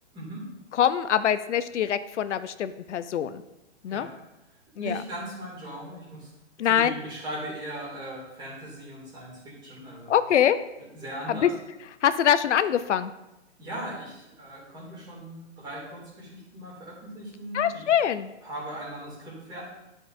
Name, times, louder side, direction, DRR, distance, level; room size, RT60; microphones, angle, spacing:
voice 1, 0.1-0.5 3.8-4.1 4.8-6.3 6.6-10.1 10.9-11.5 13.6-17.8 18.4-19.6, right 1 dB, 10° right, -5 dB, 2.5 m, -38 dB
voice 2, 0.7-3.4 3.8-4.1 4.8-5.0 6.6-6.9 10.1-10.6 11.3-11.5 12.0-13.1 17.5-18.3, left 9 dB, 80° left, 12 dB, 0.6 m, -24 dB
11.5 x 5.3 x 2.6 m, 0.94 s
hypercardioid pair, 150°, 35 cm